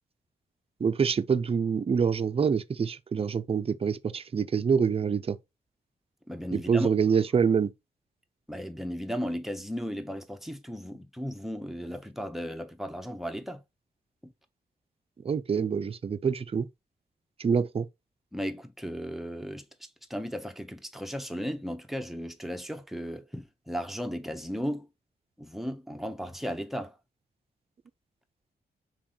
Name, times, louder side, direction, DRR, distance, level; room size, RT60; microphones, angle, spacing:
voice 1, 0.8-5.4 6.5-7.7 15.2-16.7 17.4-17.9, right 6 dB, 35° right, 0.4 m, -26 dB
voice 2, 6.3-6.9 8.5-13.6 14.2-14.3 18.3-19.6 20.1-24.9 25.4-26.9, equal, ahead, 0.8 m, -35 dB
4.3 x 3.1 x 3.8 m
cardioid pair, 90°, 17 cm